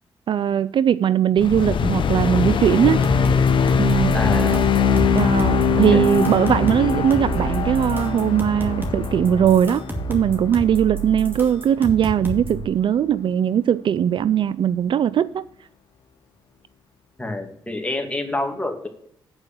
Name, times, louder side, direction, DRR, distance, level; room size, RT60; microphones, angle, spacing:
voice 1, 0.3-3.1 3.8-4.1 5.1-9.8 10.1-15.4, right 9 dB, 60° right, 0.3 m, -20 dB
sound 1, 1.4-11.8, left 6 dB, 60° left, 0.7 m, -24 dB
sound 2, 2.9-12.6, right 3 dB, 20° right, 2.4 m, -30 dB
voice 2, 4.1-4.7 5.9-6.1 17.2-18.9, left 2 dB, 15° left, 2.3 m, -27 dB
sound 3, 4.2-10.5, left 5 dB, 80° left, 1.3 m, -24 dB
8.8 x 4.7 x 7.6 m
supercardioid pair, 55°, 9 cm